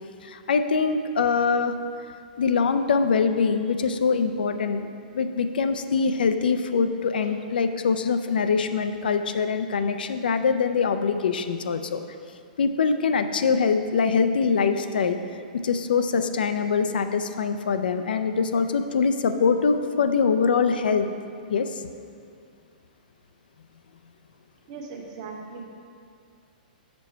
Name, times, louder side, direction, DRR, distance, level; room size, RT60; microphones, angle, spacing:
voice 1, 0.2-1.8 2.4-12.0 12.6-15.2 15.6-21.1 21.5-21.8, left 5 dB, 85° left, 9 dB, 0.5 m, -23 dB
voice 2, 24.7-25.7, right 4 dB, 45° right, -1 dB, 1.2 m, -38 dB
7.5 x 5.2 x 4.5 m, 2.4 s
hypercardioid pair, 140°, 5 cm